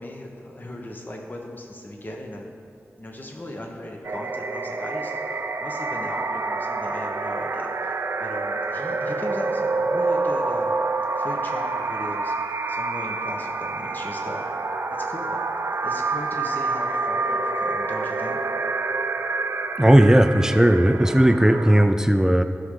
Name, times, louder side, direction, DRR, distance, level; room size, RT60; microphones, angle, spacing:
voice 1, 0.0-2.5 3.0-7.9 8.2-10.7 11.2-14.5 14.9-15.5 15.8-18.4, left 1 dB, 40° left, 0 dB, 1.2 m, -38 dB
sound 1, 4.0-21.9, right 3 dB, 65° right, 0.5 m, -27 dB
voice 2, 19.8-22.4, right 1 dB, 10° right, 8 dB, 0.4 m, -16 dB
15.0 x 6.5 x 3.8 m, 2.3 s
wide cardioid pair, 90°, 5 cm